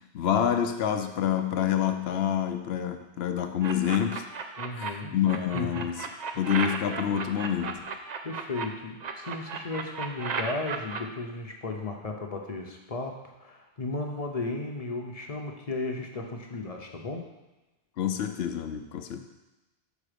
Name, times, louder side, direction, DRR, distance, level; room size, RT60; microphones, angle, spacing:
voice 1, 0.0-4.3 4.8-6.0 6.4-7.9 18.0-19.2, left 9 dB, 80° left, 8 dB, 0.8 m, -27 dB
sound 1, 3.6-4.9 5.2-8.6 9.0-11.0, right 5 dB, 50° right, 0.6 m, -34 dB
voice 2, 4.6-5.9 6.3-6.4 8.2-17.3, left 3 dB, 40° left, 2 dB, 0.7 m, -35 dB
6.1 x 4.9 x 5.0 m, 1.1 s
omnidirectional pair, 1.0 m